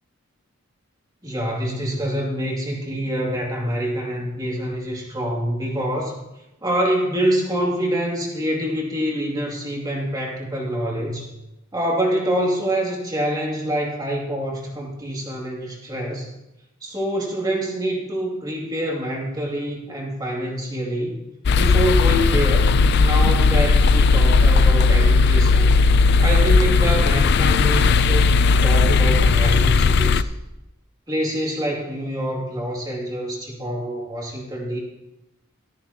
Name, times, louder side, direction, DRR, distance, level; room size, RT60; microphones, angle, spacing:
voice 1, 1.2-6.2 6.6-11.3 11.7-16.3 16.8-21.2 21.5-25.7 26.2-28.3 28.6-30.2 31.1-34.8, equal, 20° right, -2 dB, 2.4 m, -26 dB
sound 1, 21.5-30.2, left 4 dB, 50° left, 0.4 m, -16 dB
14.0 x 14.0 x 2.9 m, 0.94 s
head